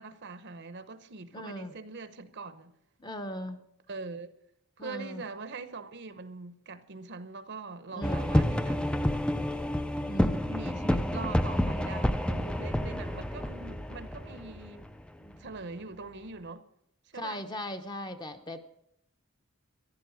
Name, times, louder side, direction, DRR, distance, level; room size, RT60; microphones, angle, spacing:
voice 1, 0.0-2.7 3.9-4.3 4.8-8.8 10.3-14.9 15.4-16.6 17.1-17.4, right 3 dB, 55° right, 0.8 m, -42 dB
voice 2, 1.3-1.7 3.0-3.6 4.8-5.2 7.9-8.4 10.1-10.4 15.2-15.5 17.1-18.6, left 1 dB, 20° left, 0.8 m, -39 dB
sound 1, 8.0-15.5, left 1 dB, 5° left, 0.4 m, -29 dB
14.5 x 11.0 x 6.3 m
head